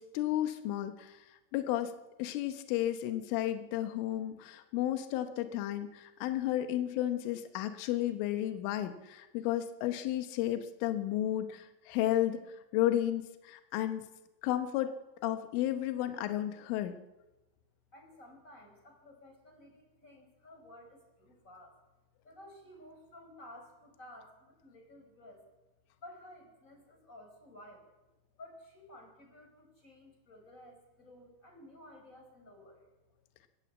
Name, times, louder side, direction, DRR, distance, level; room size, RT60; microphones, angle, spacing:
voice 1, 0.0-1.9 2.2-14.0 14.4-14.9 15.2-16.9, left 13 dB, 85° left, 8 dB, 3.5 m, -33 dB
voice 2, 17.9-21.8 22.2-25.4 26.0-27.9 28.4-32.9, left 1 dB, 15° left, 3 dB, 4.8 m, -54 dB
27.0 x 14.5 x 8.3 m, 1.1 s
omnidirectional pair, 5.5 m